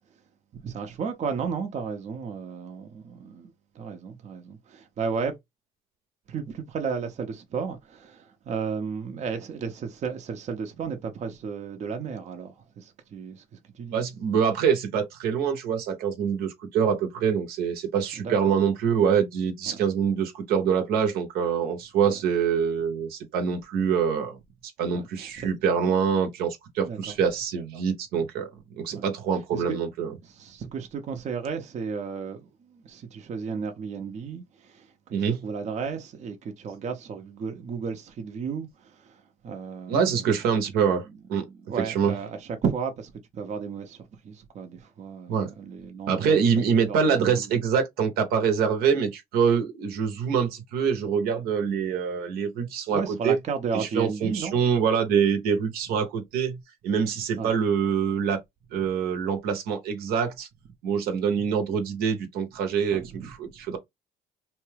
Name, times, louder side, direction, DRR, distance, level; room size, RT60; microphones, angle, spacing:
voice 1, 0.5-5.3 6.3-14.0 18.2-18.6 19.7-19.8 22.0-22.2 24.9-25.5 25.8-25.9 26.8-27.2 28.9-29.1 29.5-29.8 30.2-40.6 41.4-46.4 46.9-47.5 52.9-54.6 55.9-56.1 57.4-57.5 62.9-63.3, right 6 dB, 45° right, 0.6 m, -34 dB
voice 2, 13.9-24.4 24.8-30.1 35.1-35.4 39.9-41.0 41.3-41.5 41.9-42.1 45.3-45.5 46.1-53.4 53.7-56.6 56.8-58.4 58.7-60.5 60.8-63.8, right 7 dB, 80° right, 0.8 m, -25 dB
2.7 x 2.2 x 3.2 m
cardioid pair, 90°, 16 cm